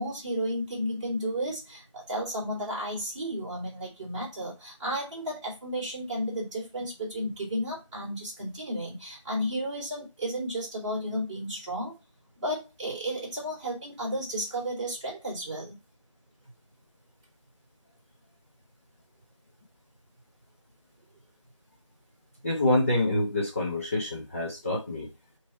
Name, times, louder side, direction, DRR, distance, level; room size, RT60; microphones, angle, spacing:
voice 1, 0.0-11.9 12.4-15.8, equal, 10° right, -10 dB, 2.6 m, -33 dB
voice 2, 22.4-25.1, left 1 dB, 25° left, -3 dB, 1.1 m, -26 dB
5.9 x 3.2 x 5.6 m, 0.25 s
figure-of-eight pair, 175°, 16 cm